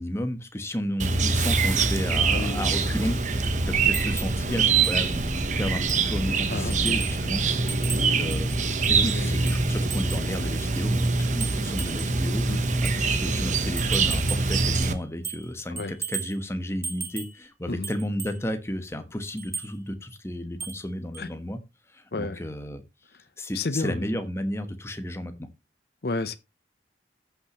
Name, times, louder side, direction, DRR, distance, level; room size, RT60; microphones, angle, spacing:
voice 1, 0.0-8.6 8.9-12.5 12.8-21.6 21.9-22.8 23.4-25.5, equal, 15° left, 1.1 m, -33 dB
Chirp tweet, 1.0-14.9, right 4 dB, 45° right, 0.9 m, -24 dB
voice 2, 2.3-2.6 6.5-6.8 9.1-9.4 12.5-12.6 15.7-16.0 17.7-17.9 21.2-21.3 22.1-22.4 23.5-24.2 26.0-26.4, left 3 dB, 65° left, 0.7 m, -31 dB
sound 1, 3.9-4.4 4.8-5.0 5.4-5.5 5.9-6.2 6.7-7.2 7.7-9.0 9.5-10.3 11.0-12.2 12.8-13.0 13.8-14.5 14.8-15.5 15.8-16.4 16.8-17.4 17.8-18.4 19.4-19.7 20.6-20.9 21.1-21.3, right 6 dB, 15° right, 1.2 m, -36 dB
14.0 x 5.9 x 3.0 m
head